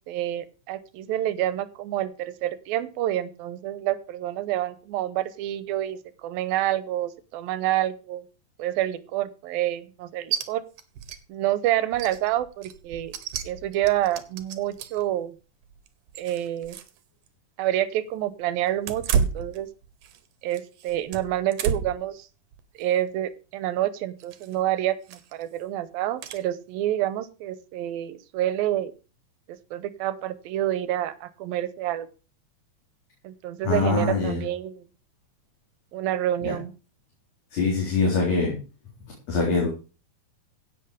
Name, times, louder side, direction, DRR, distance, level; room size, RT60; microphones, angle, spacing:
voice 1, 0.1-8.2 8.6-10.6 11.3-13.2 13.4-15.4 16.2-16.8 17.6-19.7 20.4-22.3 22.8-28.9 29.5-32.1 33.2-34.9 35.9-36.7, right 13 dB, 90° right, 15 dB, 2.7 m, -28 dB
sound 1, 10.3-10.5 10.8-11.2 11.5-11.6 11.9-15.1 15.6-17.0 17.3-17.4 18.8-20.2 20.5-22.1 22.5-22.8 24.2-24.6 25.1-25.4 26.2-26.4, right 7 dB, 65° right, 2.5 m, -31 dB
voice 2, 33.6-34.4 36.4-36.5 37.5-38.6 39.3-39.7, left 4 dB, 50° left, -3 dB, 5.2 m, -23 dB
16.0 x 8.4 x 5.0 m, 0.34 s
omnidirectional pair, 4.1 m